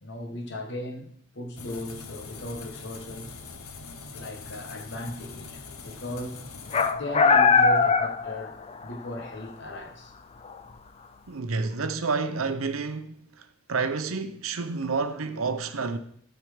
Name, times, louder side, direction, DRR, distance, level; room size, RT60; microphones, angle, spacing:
voice 1, 0.0-3.4 4.1-6.4 6.9-10.2, left 1 dB, 55° left, 1.4 m, -37 dB
sound 1, 1.6-6.9, left 4 dB, 85° left, 0.9 m, -42 dB
sound 2, 6.7-8.9 9.2-9.3 10.5-10.6, left 4 dB, 30° left, 0.4 m, -20 dB
voice 2, 11.3-16.0, right 4 dB, 80° right, 0.8 m, -29 dB
12.5 x 4.5 x 5.0 m
head